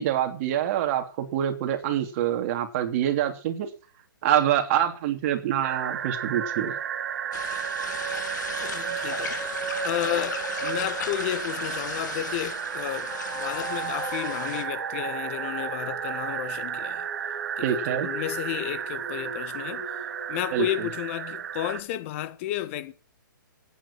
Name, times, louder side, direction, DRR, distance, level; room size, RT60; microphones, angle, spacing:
voice 1, 0.0-3.7 4.2-6.7 17.6-18.1 20.5-20.6, right 11 dB, 40° right, 3.0 m, -25 dB
sound 1, 5.6-21.8, right 9 dB, 60° right, 1.7 m, -33 dB
sound 2, 7.3-14.6, left 8 dB, 60° left, 2.5 m, -38 dB
voice 2, 8.6-9.3 9.8-17.1 17.6-19.9 20.3-22.9, left 13 dB, 35° left, 1.5 m, -32 dB
sound 3, 8.9-20.6, left 3 dB, 15° left, 5.2 m, -43 dB
16.0 x 9.5 x 7.5 m
hypercardioid pair, 150°, 11 cm